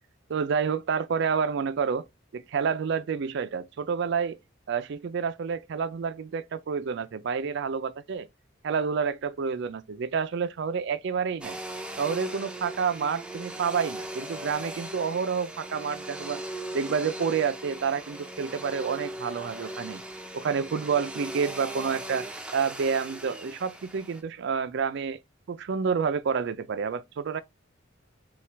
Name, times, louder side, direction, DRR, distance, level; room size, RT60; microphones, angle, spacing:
voice 1, 0.3-2.1 2.3-4.4 4.7-8.3 8.6-11.6 12.0-16.4 16.7-20.0 20.3-22.3 22.5-25.2 25.5-27.4, right 6 dB, 60° right, 0.4 m, -29 dB
Domestic sounds home sounds, 11.4-24.2, right 1 dB, 5° right, 0.5 m, -39 dB
5.6 x 2.3 x 3.3 m
head